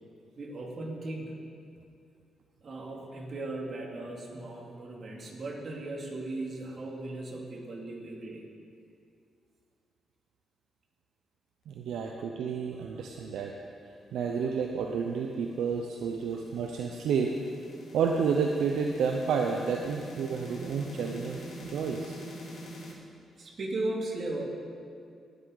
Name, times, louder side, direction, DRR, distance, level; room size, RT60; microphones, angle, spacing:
voice 1, 0.4-1.4 2.6-8.4 12.9-13.0 16.2-16.4 23.4-24.4, right 2 dB, 55° right, -2 dB, 2.6 m, -37 dB
voice 2, 11.7-13.5 14.1-17.4 17.9-22.1, right 6 dB, 85° right, 1 dB, 0.7 m, -30 dB
sound 1, 14.8-22.9, equal, 80° left, 2.0 m, -46 dB
19.0 x 8.1 x 4.0 m, 2.4 s
cardioid pair, 75°, 0 cm